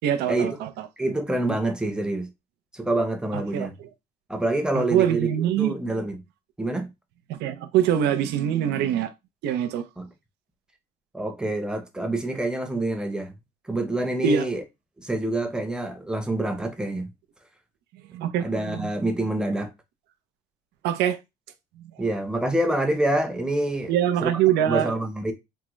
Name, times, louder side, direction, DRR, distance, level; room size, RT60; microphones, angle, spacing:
voice 1, 0.0-0.7 3.3-3.7 4.7-5.7 7.3-9.1 9.4-9.8 14.2-14.5 18.1-18.9 20.8-21.2 23.9-24.9, right 10 dB, 85° right, 0.5 m, -23 dB
voice 2, 1.0-2.3 2.7-3.7 4.3-5.3 5.6-6.2 6.6-6.9 10.0-10.1 11.1-13.3 13.6-14.6 15.0-17.1 18.4-19.7 22.0-23.9 24.2-24.3 24.7-25.3, right 1 dB, 5° right, 0.7 m, -26 dB
3.6 x 2.1 x 3.0 m
cardioid pair, 110°, 17 cm